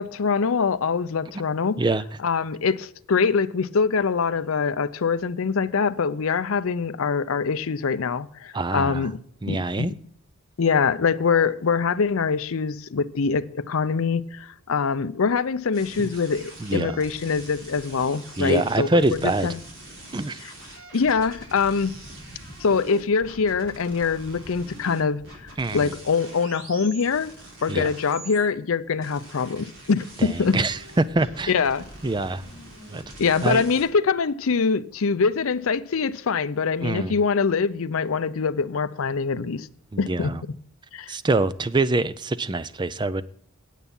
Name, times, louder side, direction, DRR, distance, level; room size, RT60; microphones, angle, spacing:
voice 1, 0.0-1.8 2.2-9.2 9.5-9.9 10.6-19.6 20.9-21.9 22.6-25.2 25.7-27.3 27.6-30.6 31.5-31.8 33.2-39.7 40.0-40.3 40.9-41.1, left 5 dB, 65° left, 0.5 m, -24 dB
voice 2, 8.5-9.1 9.4-9.9 16.0-16.1 16.6-17.0 18.4-19.5 20.1-20.4 25.6-25.9 27.7-27.9 30.2-31.5 32.0-32.4 32.9-33.0 33.4-33.6 36.8-37.1 39.9-40.4 41.1-43.2, right 2 dB, 20° right, 0.4 m, -24 dB
sound 1, 15.7-28.4 29.0-33.8, right 1 dB, 60° right, 4.1 m, -43 dB
9.1 x 8.3 x 5.4 m
head